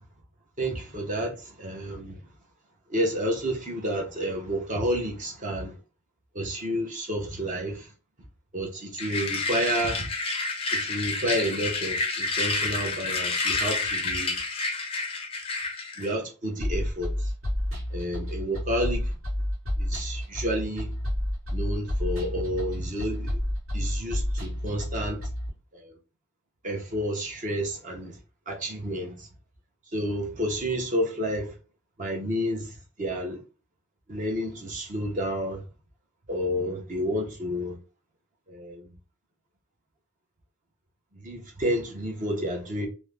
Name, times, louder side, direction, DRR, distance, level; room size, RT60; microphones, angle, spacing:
voice 1, 0.6-2.2 2.9-5.8 6.3-7.9 8.5-10.1 10.7-14.4 16.0-17.3 17.9-19.2 19.8-20.9 21.5-23.4 23.7-25.3 25.7-25.9 26.6-28.2 28.5-29.3 29.9-31.5 32.0-33.4 34.1-35.6 36.3-37.8 38.5-38.9 41.1-42.9, equal, 35° right, 0.6 m, -30 dB
sound 1, 9.0-16.1, left 3 dB, 25° left, 0.4 m, -29 dB
sound 2, 16.6-25.5, equal, 75° right, 1.1 m, -30 dB
2.4 x 2.1 x 3.1 m
head